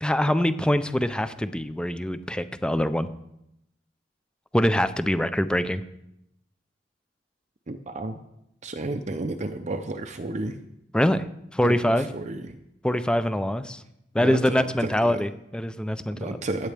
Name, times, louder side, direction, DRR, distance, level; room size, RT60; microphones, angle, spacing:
voice 1, 0.0-3.1 4.5-5.8 10.9-11.2 11.5-12.1 12.8-13.8 14.1-16.3, equal, 5° left, 11 dB, 0.5 m, -24 dB
voice 2, 7.7-8.2 8.6-10.6 11.6-12.6 14.2-15.2 16.1-16.7, right 2 dB, 40° right, 6 dB, 0.6 m, -32 dB
16.0 x 9.3 x 3.5 m, 0.83 s
head